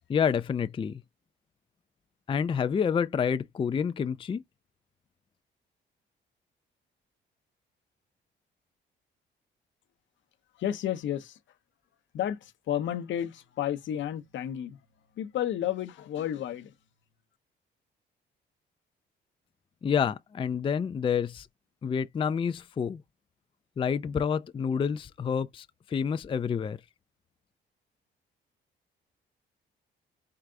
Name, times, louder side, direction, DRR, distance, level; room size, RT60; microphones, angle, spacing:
voice 1, 0.1-1.0 2.3-4.4 19.8-21.5 21.8-23.0 23.8-26.8, left 7 dB, 25° left, 0.4 m, -28 dB
voice 2, 10.6-11.4 12.1-14.8 15.2-16.7, left 11 dB, 70° left, 0.8 m, -32 dB
4.7 x 2.2 x 3.7 m
cardioid pair, 90°, 20 cm